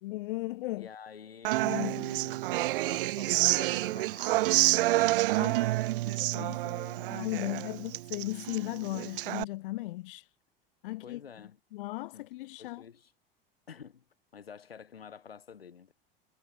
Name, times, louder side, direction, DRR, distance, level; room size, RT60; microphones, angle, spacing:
voice 1, 0.0-0.9 1.6-2.1 5.4-5.5 6.3-6.6 7.0-10.3 10.8-11.2 11.7-12.8, left 18 dB, 65° left, 1.3 m, -36 dB
voice 2, 0.7-7.7 10.9-11.6 12.1-12.3 12.6-13.1 13.7-14.0 14.3-15.9, left 7 dB, 80° left, 3.7 m, -49 dB
Human voice / Acoustic guitar, 1.4-9.4, right 18 dB, 65° right, 1.3 m, -28 dB
figure-of-eight pair, 75°, 29 cm